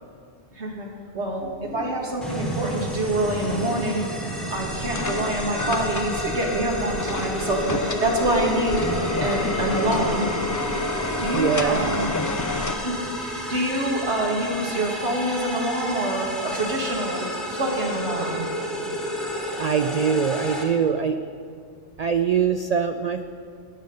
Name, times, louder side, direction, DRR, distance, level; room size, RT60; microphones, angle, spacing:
voice 1, 0.5-0.9 1.1-4.1 4.5-10.3 11.2-12.1 12.8-17.3 17.5-18.4, right 1 dB, 65° right, -1 dB, 2.2 m, -26 dB
sound 1, 2.2-20.6, equal, ahead, 1.7 m, -31 dB
sound 2, 4.5-12.7, left 3 dB, 30° left, 0.3 m, -29 dB
voice 2, 11.3-11.8 19.6-21.2 22.0-23.2, right 7 dB, 85° right, 8 dB, 0.3 m, -23 dB
19.0 x 7.7 x 5.4 m, 2.3 s
omnidirectional pair, 1.2 m